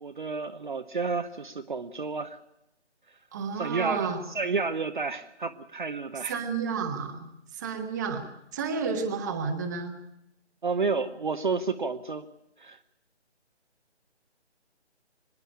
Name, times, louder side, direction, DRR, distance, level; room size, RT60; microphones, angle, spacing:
voice 1, 0.0-2.4 3.5-6.4 10.6-12.2 12.6-12.8, right 4 dB, 45° right, 6 dB, 0.9 m, -31 dB
voice 2, 3.3-4.2 6.3-7.3 7.6-8.2 8.5-9.9, right 5 dB, 15° right, 4 dB, 1.3 m, -31 dB
25.0 x 10.5 x 9.9 m, 0.86 s
figure-of-eight pair, 150°, 35 cm